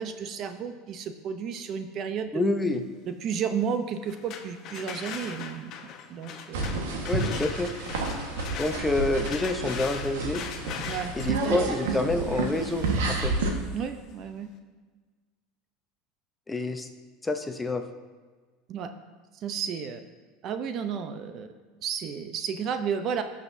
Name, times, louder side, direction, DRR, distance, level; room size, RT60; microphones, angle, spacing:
voice 1, 0.0-2.4 3.1-5.7 6.1-6.6 10.9-12.0 13.7-14.5 18.7-18.9 19.3-20.0 20.4-21.5 21.8-23.2, right 7 dB, 45° right, 9 dB, 0.6 m, -32 dB
voice 2, 2.3-2.8 7.1-7.7 8.6-10.4 11.2-13.3 16.5-16.9 17.2-17.8, left 2 dB, 10° left, 6 dB, 0.8 m, -27 dB
sound 1, 4.0-13.9, left 7 dB, 50° left, 0.9 m, -41 dB
sound 2, 6.5-13.5, right 3 dB, 90° right, 1.4 m, -30 dB
17.0 x 6.3 x 2.7 m, 1.4 s
supercardioid pair, 115°, 0 cm